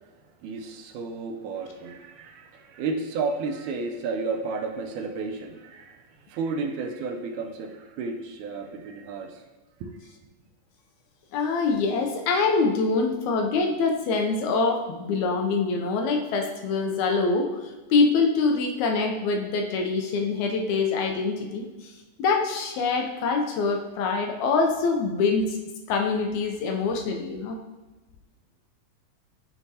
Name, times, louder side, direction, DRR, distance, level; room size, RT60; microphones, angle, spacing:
voice 1, 0.4-9.4 9.8-10.0, right 4 dB, 85° right, 3 dB, 2.1 m, -32 dB
voice 2, 11.3-17.5 17.9-21.9 22.2-25.6 25.9-27.6, left 4 dB, 80° left, 3 dB, 1.9 m, -24 dB
9.8 x 3.5 x 2.7 m, 1.1 s
omnidirectional pair, 3.5 m